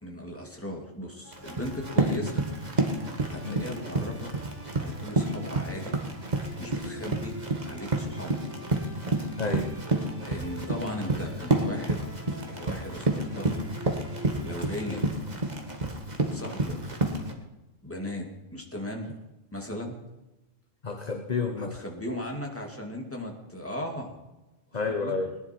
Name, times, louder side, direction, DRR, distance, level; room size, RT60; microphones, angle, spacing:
voice 1, 0.0-2.5 3.3-4.3 4.8-6.0 6.6-7.4 7.6-8.5 10.2-12.0 12.5-13.6 14.4-15.1 16.3-16.8 17.8-19.1 19.5-20.0 21.6-24.2 25.0-25.1, left 1 dB, 10° left, 1 dB, 2.3 m, -37 dB
sound 1, 1.2-15.0, right 1 dB, 10° right, 1.7 m, -47 dB
Run, 1.3-17.3, right 2 dB, 30° right, 1.7 m, -30 dB
voice 2, 9.4-9.7 12.5-12.6 14.9-15.1 20.8-21.7 24.7-25.4, left 4 dB, 30° left, 3 dB, 1.2 m, -30 dB
20.5 x 11.0 x 4.5 m, 1.0 s
omnidirectional pair, 1.4 m